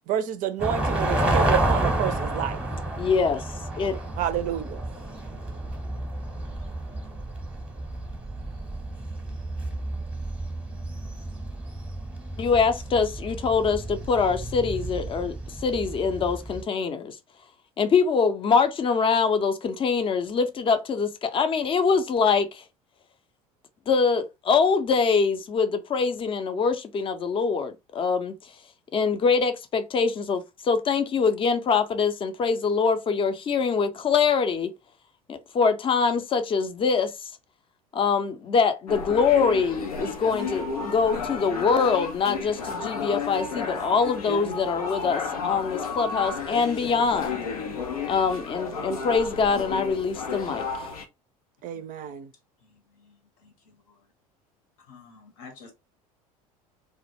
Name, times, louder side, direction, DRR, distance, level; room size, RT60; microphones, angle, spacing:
voice 1, 0.1-2.6 4.2-4.8 51.6-52.3, right 10 dB, 45° right, 0.4 m, -29 dB
sound 1, 0.6-16.6, right 1 dB, 5° right, 0.8 m, -30 dB
voice 2, 3.0-3.5 3.8-4.0 12.4-15.4 15.6-17.1 17.8-22.6 23.9-28.3 28.9-34.7 35.3-37.3 37.9-47.4 48.1-50.7, left 5 dB, 30° left, 0.5 m, -24 dB
sound 2, 38.9-51.1, left 5 dB, 85° left, 0.5 m, -32 dB
voice 3, 54.9-55.7, left 4 dB, 70° left, 0.9 m, -47 dB
2.1 x 2.0 x 2.9 m
hypercardioid pair, 70°, 19 cm